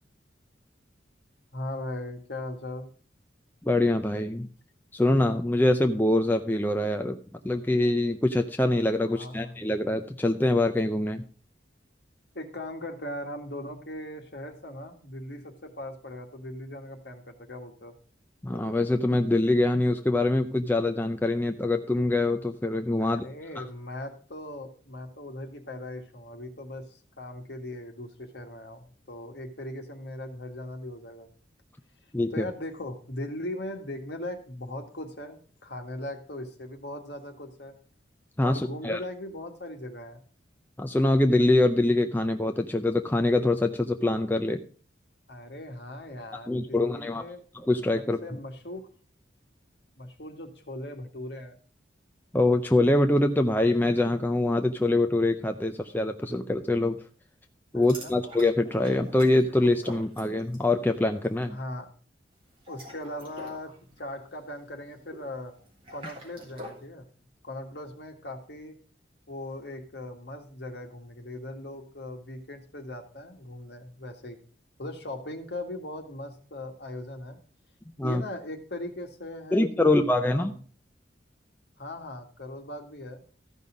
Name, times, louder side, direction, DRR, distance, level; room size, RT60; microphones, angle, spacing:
voice 1, 1.5-2.9 9.1-9.6 12.3-17.9 23.0-31.3 32.3-37.8 38.4-40.2 45.3-47.4 47.9-48.9 50.0-51.6 57.7-58.2 61.5-61.9 62.7-63.7 64.0-65.5 65.9-67.1 67.4-68.7 69.3-74.4 74.8-77.4 78.0-80.6 81.8-83.2, left 1 dB, 60° left, 3 dB, 1.8 m, -39 dB
voice 2, 3.6-4.5 4.9-7.2 7.4-11.2 18.4-23.3 23.6-23.7 32.1-32.5 38.4-39.0 40.8-44.6 46.3-47.2 47.5-48.2 52.3-57.0 57.7-61.6 78.0-78.2 79.5-80.5, left 2 dB, 10° left, 5 dB, 0.5 m, -24 dB
sound 1, 57.8-60.7 61.0-61.3 62.5-66.9, equal, 30° right, 3.3 m, -46 dB
14.0 x 5.5 x 5.1 m, 0.42 s
head